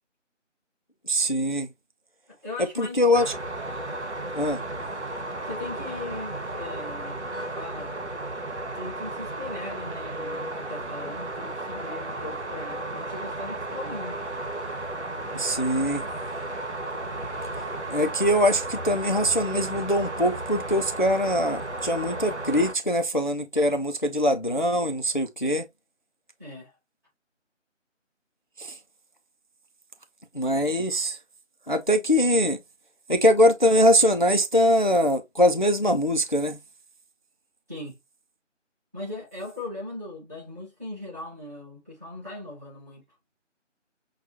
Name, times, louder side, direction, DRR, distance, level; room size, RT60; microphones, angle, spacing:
voice 1, 1.1-1.7 2.8-3.3 4.3-4.6 15.3-16.0 17.9-25.6 28.6-28.7 30.3-31.2 31.7-32.6 33.1-36.6, equal, 40° left, 0.4 m, -22 dB
voice 2, 2.3-3.3 5.4-7.9 8.7-14.2 26.4-26.7 37.7-38.0 38.9-43.0, left 2 dB, 15° right, 1.0 m, -39 dB
sound 1, 3.1-22.7, right 2 dB, 65° right, 1.4 m, -34 dB
6.0 x 2.3 x 2.6 m
figure-of-eight pair, 160°, 37 cm